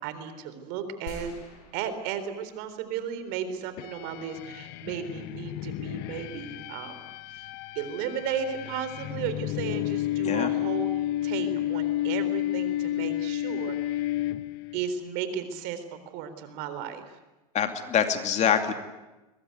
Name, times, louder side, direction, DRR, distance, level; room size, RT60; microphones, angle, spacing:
voice 1, 0.0-1.3 1.7-7.5 7.7-10.9 11.2-14.0 14.7-17.2, right 8 dB, 55° right, 11 dB, 3.8 m, -34 dB
sound 1, 1.1-2.8 3.3-3.4, left 4 dB, 70° left, 6.8 m, -46 dB
sound 2, 3.8-14.8, left 14 dB, 55° left, 1.1 m, -31 dB
voice 2, 17.5-18.7, left 8 dB, 35° left, 7 dB, 2.7 m, -25 dB
22.5 x 21.0 x 9.5 m, 1.1 s
hypercardioid pair, 110°, 20 cm